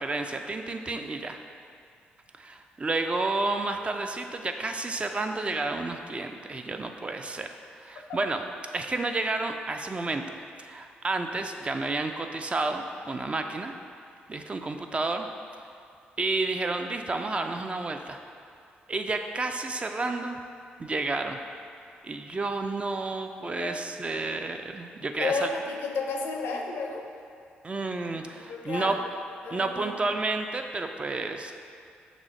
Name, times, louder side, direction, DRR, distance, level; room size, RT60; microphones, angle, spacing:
voice 1, 0.0-1.4 2.4-7.5 7.8-8.4 8.7-10.2 10.6-13.7 14.3-15.3 16.2-18.2 18.9-20.4 20.8-21.4 22.0-25.5 27.6-28.9 29.5-31.5, right 3 dB, 30° right, 5 dB, 0.3 m, -30 dB
voice 2, 23.4-23.8 25.2-27.1 28.5-29.0 29.4-29.9, left 4 dB, 75° left, 1 dB, 0.5 m, -32 dB
6.0 x 2.1 x 3.9 m, 2.3 s
supercardioid pair, 55°, 4 cm